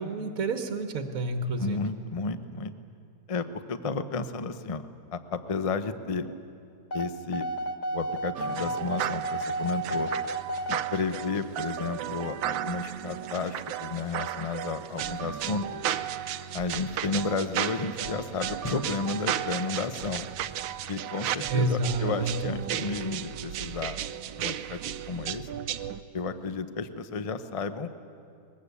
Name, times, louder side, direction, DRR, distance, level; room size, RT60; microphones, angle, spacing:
voice 1, 0.0-1.8 21.5-22.6, right 2 dB, 50° right, 5 dB, 1.5 m, -29 dB
voice 2, 1.6-2.7 3.3-4.8 5.1-6.3 6.9-7.5 7.9-10.1 10.7-15.8 16.5-20.3 20.9-24.0 24.4-25.5 26.1-27.9, left 4 dB, 55° left, 10 dB, 0.3 m, -32 dB
sound 1, 6.9-10.9, right 1 dB, 30° left, 0.9 m, -32 dB
sound 2, 8.3-26.0, right 10 dB, 80° right, 1.4 m, -34 dB
21.5 x 21.0 x 8.3 m, 2.5 s
omnidirectional pair, 2.1 m